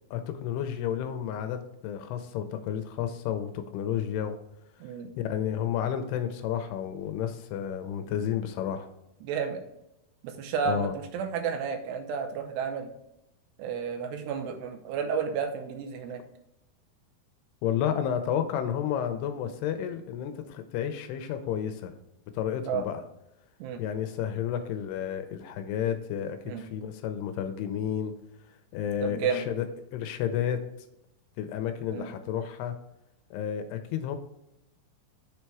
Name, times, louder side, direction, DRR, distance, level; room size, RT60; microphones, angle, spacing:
voice 1, 0.1-4.4 5.2-8.9 10.7-10.9 17.6-21.9 22.3-23.0 23.8-28.1 28.7-30.6 31.4-32.8 33.3-34.2, left 9 dB, 80° left, 8 dB, 2.5 m, -31 dB
voice 2, 9.2-9.6 10.2-12.9 13.6-16.2 22.7-22.9 23.6-23.8 26.5-26.6 29.0-29.5 31.9-32.1, right 6 dB, 80° right, 6 dB, 2.9 m, -31 dB
6.8 x 4.4 x 4.6 m, 0.84 s
omnidirectional pair, 4.9 m